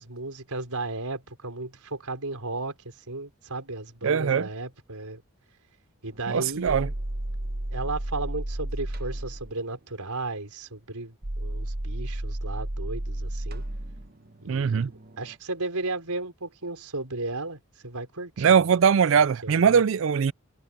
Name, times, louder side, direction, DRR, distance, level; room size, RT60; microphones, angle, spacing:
voice 1, 0.0-5.2 6.0-6.9 7.7-13.6 14.4-14.9 15.2-18.6 19.4-19.8, right 2 dB, 90° right, 4.7 m, -34 dB
voice 2, 4.0-4.5 6.3-6.9 14.5-14.9 18.4-20.3, right 6 dB, 60° right, 0.4 m, -21 dB
sound 1, 6.1-9.5 11.2-15.4, right 1 dB, 40° right, 1.2 m, -33 dB
head